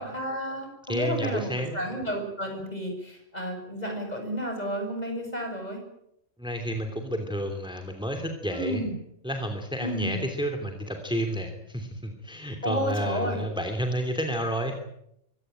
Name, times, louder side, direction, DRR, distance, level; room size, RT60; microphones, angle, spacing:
voice 1, 0.0-5.8 8.5-8.9 9.8-10.3 12.6-13.4, equal, 30° left, 4 dB, 7.6 m, -31 dB
voice 2, 0.9-1.8 6.4-8.8 9.2-14.7, equal, 5° right, 5 dB, 2.9 m, -30 dB
24.5 x 18.0 x 9.1 m, 0.78 s
omnidirectional pair, 1.3 m